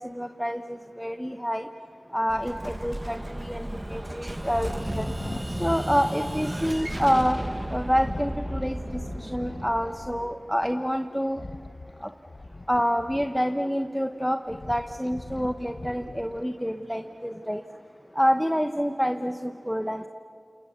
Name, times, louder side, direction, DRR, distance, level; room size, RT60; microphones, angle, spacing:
voice 1, 0.0-1.7 2.1-5.1 5.5-7.4 7.7-11.4 12.0-12.1 12.7-17.6 18.1-20.1, equal, ahead, 7 dB, 0.9 m, -27 dB
Explosion, 2.3-11.0, right 1 dB, 20° right, 1.3 m, -34 dB
sound 1, 4.5-6.8 8.0-10.3 11.3-13.6 14.2-16.6, left 2 dB, 50° left, 0.7 m, -40 dB
29.5 x 28.0 x 6.8 m, 2.3 s
wide cardioid pair, 70°, 0 cm